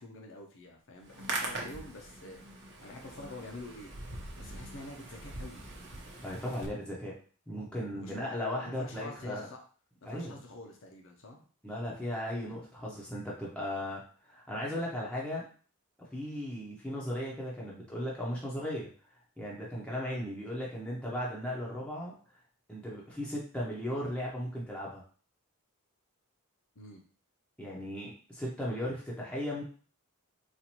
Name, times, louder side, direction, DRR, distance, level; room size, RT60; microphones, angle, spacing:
voice 1, 0.0-3.9 4.4-5.7 7.9-8.3 8.6-9.6 10.0-11.5 26.7-27.0, left 2 dB, 60° left, 1 dB, 0.7 m, -47 dB
Hands, 1.0-6.7, right 2 dB, 55° right, 0.8 m, -42 dB
voice 2, 6.2-7.1 7.5-9.5 10.1-10.4 11.6-15.5 16.1-18.9 19.4-22.1 22.7-25.0 27.6-29.6, equal, 5° left, -5 dB, 0.7 m, -36 dB
4.2 x 2.5 x 2.9 m, 0.41 s
head